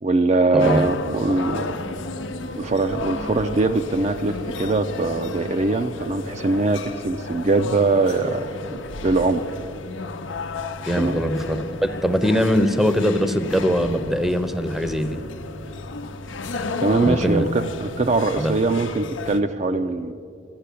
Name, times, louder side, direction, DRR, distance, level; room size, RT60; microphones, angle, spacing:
voice 1, 0.0-1.8 2.6-8.5 8.7-9.4 11.0-11.2 16.8-20.1, right 3 dB, 35° right, 7 dB, 0.4 m, -22 dB
sound 1, 0.6-19.4, left 3 dB, 85° left, 0.7 m, -33 dB
voice 2, 10.8-15.2 17.0-17.4 18.4-18.5, equal, ahead, 9 dB, 0.7 m, -21 dB
13.5 x 8.6 x 8.3 m, 2.3 s
head